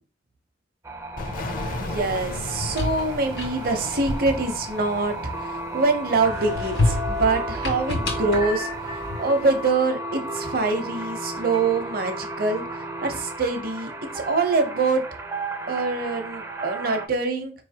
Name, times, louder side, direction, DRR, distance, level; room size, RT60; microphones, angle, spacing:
sound 1, 0.8-17.1, right 1 dB, 15° right, 0.4 m, -33 dB
sound 2, 1.2-5.8, left 2 dB, 50° left, 0.5 m, -35 dB
voice 1, 1.8-8.7 9.2-12.6 13.0-15.0 15.7-17.5, right 3 dB, 55° right, 6 dB, 0.7 m, -24 dB
sound 3, 2.5-5.6 6.1-9.5, left 1 dB, 85° left, 1.6 m, -29 dB
4.5 x 3.1 x 2.8 m, 0.36 s
head